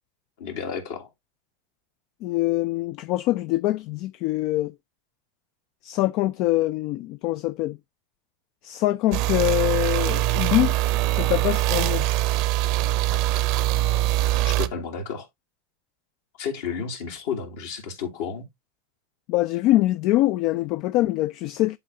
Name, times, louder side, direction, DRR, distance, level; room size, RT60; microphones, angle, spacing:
voice 1, 0.4-1.1 13.1-13.2 14.4-15.3 16.4-18.5, left 6 dB, 70° left, 2.6 m, -32 dB
voice 2, 2.2-4.7 5.8-7.8 8.6-10.8 11.1-12.1 19.3-21.8, left 17 dB, 55° left, 0.3 m, -24 dB
sound 1, 9.1-14.7, right 16 dB, 55° right, 0.6 m, -23 dB
11.0 x 3.8 x 2.7 m
hypercardioid pair, 115°, 0 cm